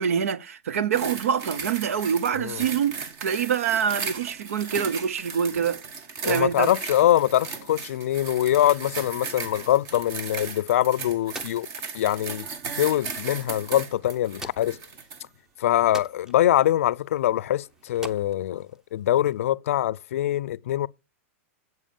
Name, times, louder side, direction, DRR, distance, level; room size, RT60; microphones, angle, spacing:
voice 1, 0.0-2.9 3.2-5.8 6.2-6.7, right 7 dB, 85° right, 0.8 m, -25 dB
sound 1, 0.9-15.3 15.9-16.0, right 5 dB, 40° right, 1.4 m, -37 dB
voice 2, 6.2-11.7 11.9-12.5 12.8-14.8 15.6-20.9, left 12 dB, 75° left, 0.4 m, -23 dB
sound 2, 10.5-19.5, right 1 dB, 10° right, 0.7 m, -47 dB
8.0 x 7.3 x 7.0 m
supercardioid pair, 140°, 7 cm